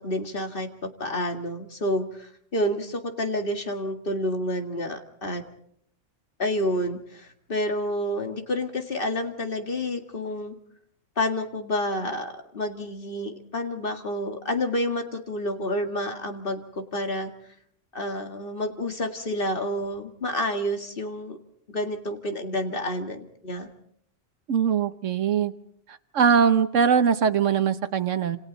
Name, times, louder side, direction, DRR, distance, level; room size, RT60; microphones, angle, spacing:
voice 1, 0.0-5.4 6.4-10.5 11.2-17.3 17.9-21.4 21.7-23.7, left 1 dB, 45° left, 5 dB, 2.3 m, -29 dB
voice 2, 24.5-25.5 26.1-28.4, right 7 dB, 75° right, 11 dB, 1.4 m, -21 dB
29.0 x 27.5 x 4.1 m, 0.67 s
omnidirectional pair, 1.3 m